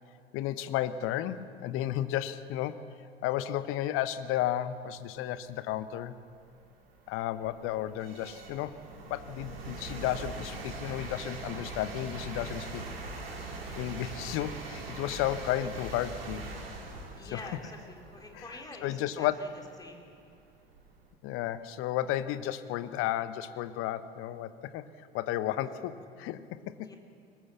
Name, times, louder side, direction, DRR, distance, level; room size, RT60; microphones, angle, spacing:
voice 1, 0.3-2.8 3.2-6.1 7.1-8.8 9.1-12.9 13.7-16.5 17.3-17.4 18.3-18.4 18.8-19.4 21.2-26.9, left 12 dB, 45° left, 14 dB, 1.1 m, -33 dB
sound 1, 5.6-5.7 6.3-21.1, right 2 dB, 70° right, 3.5 m, -42 dB
voice 2, 17.1-19.5 19.8-20.1 26.8-27.0, left 2 dB, 10° left, 2 dB, 3.6 m, -47 dB
22.0 x 20.0 x 7.1 m, 2.3 s
figure-of-eight pair, 75°, 30 cm